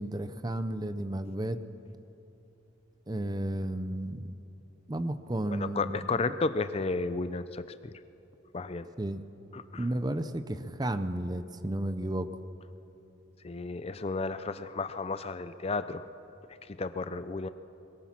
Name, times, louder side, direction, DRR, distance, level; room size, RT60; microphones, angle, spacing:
voice 1, 0.0-1.6 3.1-4.4 4.9-6.1 9.0-9.2 9.8-12.3, right 1 dB, 20° right, 11 dB, 0.6 m, -33 dB
voice 2, 5.5-7.9 8.5-8.9 9.5-9.9 13.4-16.0 16.8-17.5, left 3 dB, 30° left, 12 dB, 0.4 m, -33 dB
22.0 x 20.5 x 6.0 m, 2.9 s
head